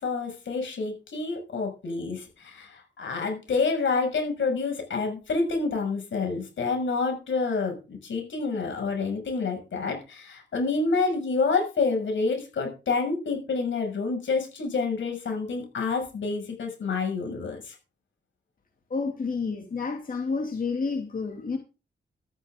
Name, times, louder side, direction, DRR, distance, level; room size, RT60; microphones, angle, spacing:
voice 1, 0.0-17.7, left 4 dB, 90° left, 6.3 m, -28 dB
voice 2, 18.9-21.6, left 4 dB, 45° left, 2.4 m, -30 dB
13.5 x 13.5 x 3.7 m
wide cardioid pair, 115°, 19 cm